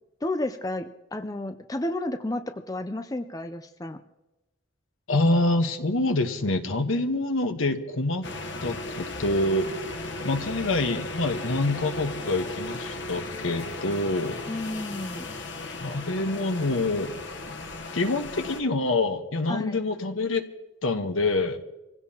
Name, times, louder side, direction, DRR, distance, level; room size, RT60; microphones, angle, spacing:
voice 1, 0.2-4.0 14.5-15.4 19.5-19.8, left 1 dB, 15° left, 8 dB, 0.5 m, -32 dB
voice 2, 5.1-8.3 8.6-9.7 10.2-14.4 15.8-17.1 17.9-20.4 20.8-21.6, left 2 dB, 80° left, 7 dB, 1.3 m, -26 dB
sound 1, 8.2-18.6, left 2 dB, 55° left, 1.1 m, -36 dB
26.5 x 16.0 x 2.9 m, 1.0 s
head